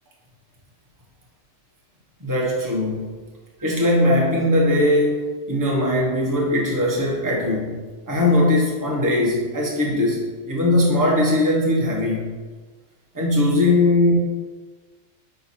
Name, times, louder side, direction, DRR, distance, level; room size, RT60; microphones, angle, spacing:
voice 1, 2.2-3.1 3.6-7.8 8.1-12.3 13.1-14.2, left 1 dB, 15° right, -3 dB, 1.1 m, -20 dB
5.4 x 4.3 x 4.3 m, 1.4 s
omnidirectional pair, 1.3 m